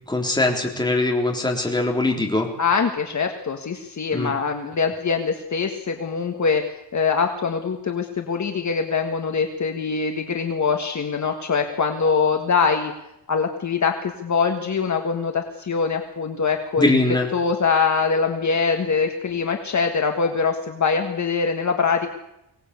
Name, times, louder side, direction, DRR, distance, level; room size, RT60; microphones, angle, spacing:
voice 1, 0.1-2.5 4.1-4.3 16.8-17.3, left 2 dB, 10° left, 0 dB, 3.7 m, -21 dB
voice 2, 2.6-6.6 6.9-12.9 13.3-16.8 17.3-22.1, left 5 dB, 45° left, 4 dB, 1.7 m, -23 dB
24.0 x 18.0 x 8.3 m, 0.87 s
wide cardioid pair, 175°, 41 cm